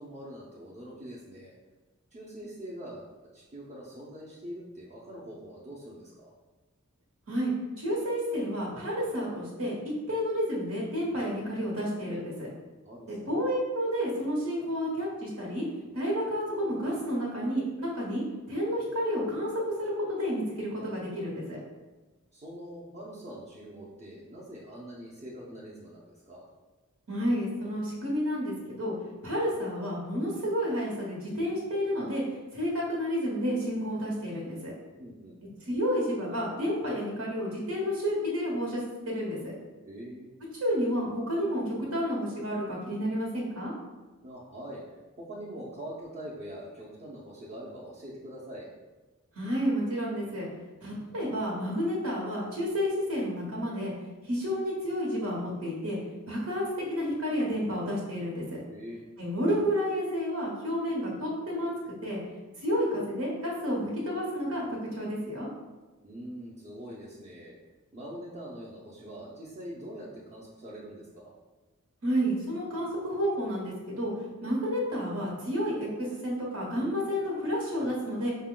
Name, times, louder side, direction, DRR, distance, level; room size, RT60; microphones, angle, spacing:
voice 1, 0.0-1.5 2.1-6.3 12.8-13.2 22.3-26.4 35.0-35.4 39.8-40.3 44.2-44.8 45.2-48.7 58.7-59.1 66.0-67.5 67.9-71.3, equal, 30° right, -8 dB, 0.6 m, -43 dB
voice 2, 7.3-12.5 13.1-15.6 15.9-21.6 27.1-28.9 29.2-32.2 32.5-34.7 35.6-38.8 39.1-39.5 40.6-43.7 49.3-50.5 50.8-53.9 54.2-56.0 56.3-58.6 59.2-61.7 62.0-62.2 62.6-65.5 72.0-74.1 74.4-78.3, equal, 80° right, -3 dB, 1.1 m, -30 dB
5.3 x 2.2 x 3.7 m, 1.2 s
head